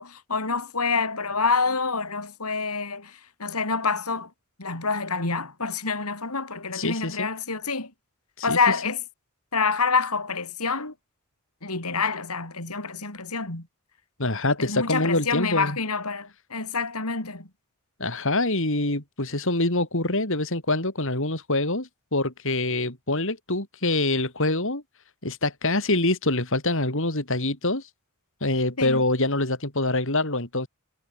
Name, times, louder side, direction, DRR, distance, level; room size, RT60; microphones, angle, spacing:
voice 1, 0.0-3.1 3.4-4.3 4.6-7.9 8.4-9.0 9.5-10.9 11.6-13.6 14.6-17.4 28.8-29.0, left 4 dB, 90° left, 5.6 m, -27 dB
voice 2, 6.7-7.3 8.4-8.8 14.2-15.8 18.0-24.8 25.2-27.8 28.4-30.7, left 2 dB, 60° left, 5.1 m, -25 dB
head